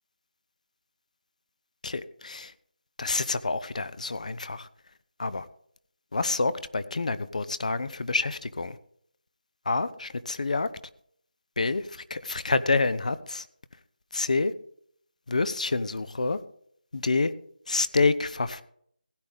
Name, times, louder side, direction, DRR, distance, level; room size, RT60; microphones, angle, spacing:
voice 1, 1.8-2.5 3.0-4.7 5.2-5.4 6.1-8.8 9.7-10.7 11.6-11.8 12.1-13.4 14.1-14.5 15.3-16.4 16.9-17.3 17.7-18.6, left 3 dB, 55° left, 14 dB, 0.8 m, -27 dB
16.5 x 10.0 x 3.6 m, 0.65 s
figure-of-eight pair, 165°, 5 cm